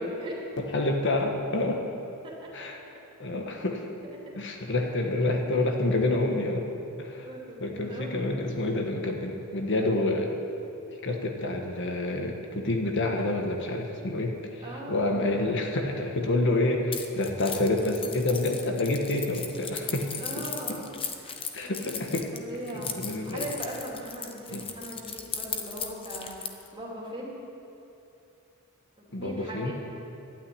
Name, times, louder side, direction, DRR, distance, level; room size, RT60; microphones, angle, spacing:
voice 1, 0.0-0.4 2.2-2.3 4.0-4.2 7.1-8.7 14.6-15.0 20.2-21.8 22.3-27.4 29.0-29.7, right 1 dB, 25° right, -4 dB, 2.9 m, -40 dB
voice 2, 0.6-1.8 2.5-2.8 3.2-3.9 4.3-6.7 7.0-7.3 7.6-10.3 11.0-14.6 14.9-20.1 20.4-20.5 21.5-22.3 22.7-23.5 24.5-24.6 29.1-29.7, left 2 dB, 55° left, 2 dB, 1.3 m, -28 dB
Keys jangling, 16.9-26.7, left 6 dB, 25° left, 0.9 m, -37 dB
12.0 x 9.2 x 9.7 m, 2.8 s
head